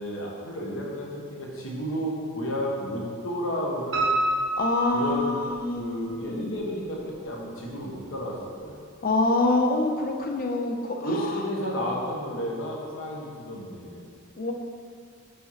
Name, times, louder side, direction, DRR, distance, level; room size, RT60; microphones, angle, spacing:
voice 1, 0.0-4.2 4.9-5.4 5.8-8.9 11.0-14.0, equal, 80° left, -2 dB, 1.3 m, -32 dB
Piano, 3.9-5.8 6.3-7.1 7.5-7.6 8.0-8.1 8.4-8.5, right 2 dB, 70° right, 1.4 m, -28 dB
voice 2, 4.6-6.6 9.0-11.6 14.4-14.5, left 2 dB, 45° left, 3 dB, 0.6 m, -26 dB
5.5 x 4.5 x 5.7 m, 2.2 s
head